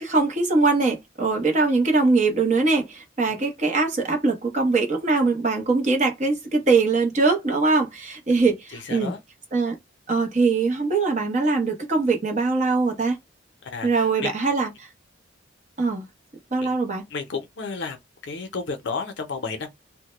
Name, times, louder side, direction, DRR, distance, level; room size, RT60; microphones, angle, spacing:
voice 1, 0.0-9.1 9.5-9.8 10.1-13.2 13.8-14.9 15.8-16.1 16.5-17.0, right 3 dB, 35° right, 0.7 m, -22 dB
voice 2, 8.7-9.2 13.6-14.3 16.6-16.7 17.1-18.0 18.2-19.7, left 4 dB, 65° left, 0.6 m, -32 dB
2.1 x 2.1 x 2.9 m
head